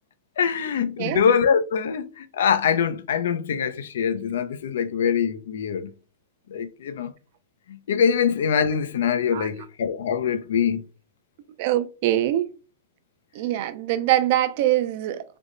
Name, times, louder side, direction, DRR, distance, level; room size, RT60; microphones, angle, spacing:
voice 1, 0.4-5.9 6.5-7.1 7.7-10.9, left 7 dB, 80° left, 0.4 m, -23 dB
voice 2, 11.6-12.5 13.3-15.2, right 13 dB, 45° right, 0.4 m, -23 dB
3.4 x 2.1 x 3.7 m
supercardioid pair, 160°, 0 cm